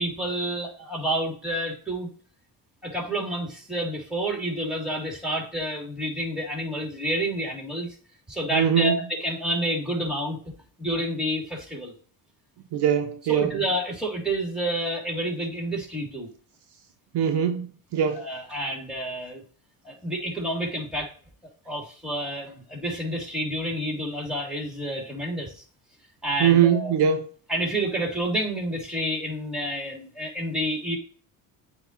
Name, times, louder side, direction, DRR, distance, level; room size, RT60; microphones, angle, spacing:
voice 1, 0.0-2.1 2.8-7.9 8.3-10.4 10.8-11.9 12.7-12.8 13.3-16.3 18.0-19.4 19.8-21.1 21.4-25.5 26.2-26.9 27.5-31.0, right 1 dB, ahead, 3.1 m, -29 dB
voice 2, 8.5-9.0 12.7-13.6 17.1-18.3 26.4-27.3, right 8 dB, 55° right, 0.8 m, -22 dB
7.7 x 3.1 x 4.4 m
supercardioid pair, 75°, 49 cm